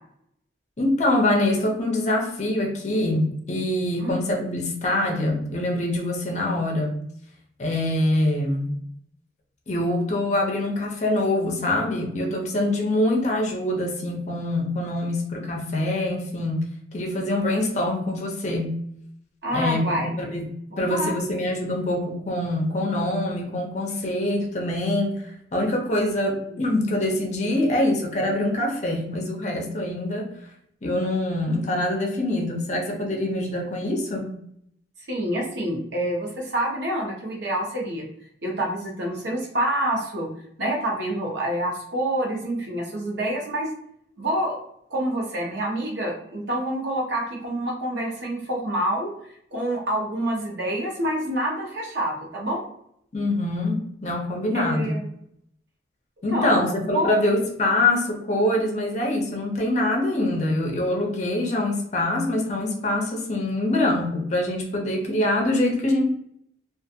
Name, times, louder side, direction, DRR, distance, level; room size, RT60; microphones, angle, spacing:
voice 1, 0.8-7.0 7.6-8.7 9.7-18.8 19.5-30.3 30.8-34.3 53.1-55.0 56.2-66.0, left 1 dB, 40° left, 1 dB, 0.5 m, -24 dB
voice 2, 19.4-20.1 20.7-21.1 26.5-26.6 35.1-38.1 38.4-40.3 40.6-43.7 44.2-44.6 44.9-49.1 49.5-52.7 54.5-55.0 56.3-57.1, right 1 dB, 80° right, -1 dB, 0.9 m, -27 dB
2.4 x 2.4 x 2.6 m, 0.71 s
head